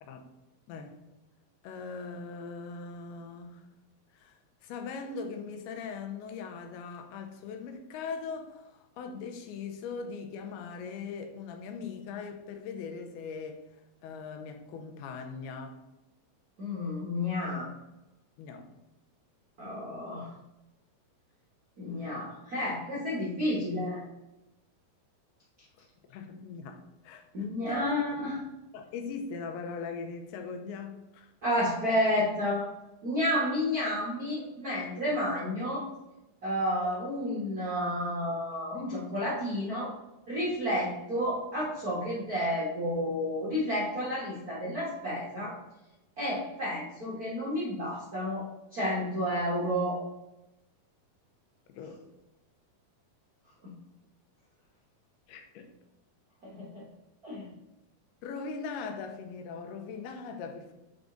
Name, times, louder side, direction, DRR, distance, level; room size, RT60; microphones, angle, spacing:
voice 1, 1.6-3.7 4.1-13.6 14.0-15.8 18.4-18.7 25.8-27.9 28.7-31.3 36.8-37.0 51.7-52.0 55.3-55.7 58.2-60.7, left 5 dB, 90° left, 2.8 m, -40 dB
voice 2, 16.6-17.7 19.6-20.3 21.8-24.0 27.3-28.4 31.4-32.7 33.0-35.8 36.4-39.9 40.3-45.5 46.2-48.4 48.7-50.0 53.6-53.7 56.4-56.8 57.2-57.5, left 1 dB, 80° right, 0.8 m, -31 dB
8.1 x 3.7 x 3.9 m
omnidirectional pair, 4.4 m